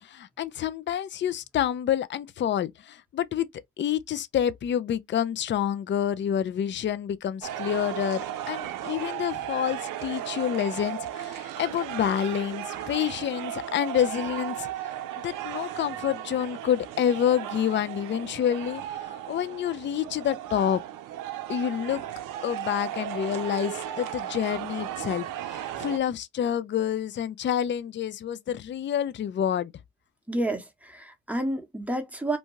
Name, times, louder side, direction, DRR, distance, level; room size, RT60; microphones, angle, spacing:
voice 1, 0.0-3.5 3.8-14.7 15.2-20.8 21.5-22.0 22.4-29.7, left 9 dB, 35° left, 0.4 m, -28 dB
sound 1, 7.4-26.0, right 11 dB, 80° right, 0.5 m, -35 dB
voice 2, 30.3-32.4, right 1 dB, 5° right, 0.8 m, -30 dB
2.7 x 2.2 x 2.9 m
cardioid pair, 70°, 31 cm